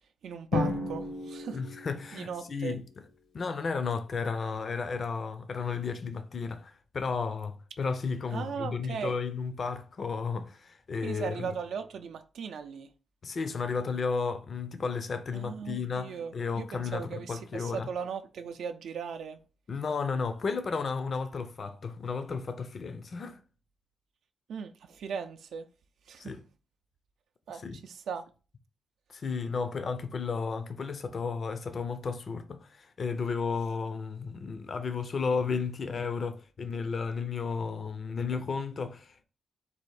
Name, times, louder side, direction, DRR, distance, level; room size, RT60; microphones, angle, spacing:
voice 1, 0.2-1.6 2.1-2.8 8.3-9.1 11.0-12.9 15.3-19.4 24.5-25.6 26.1-26.3 27.5-28.3, right 6 dB, 70° right, 0.4 m, -38 dB
Drum, 0.5-2.7, left 2 dB, 90° left, 1.3 m, -33 dB
voice 2, 1.5-2.9 3.3-11.6 13.2-17.9 19.7-23.4 26.2-26.4 27.5-27.8 29.1-39.2, left 5 dB, 40° left, 0.4 m, -33 dB
4.1 x 2.5 x 4.7 m
wide cardioid pair, 150°, 0 cm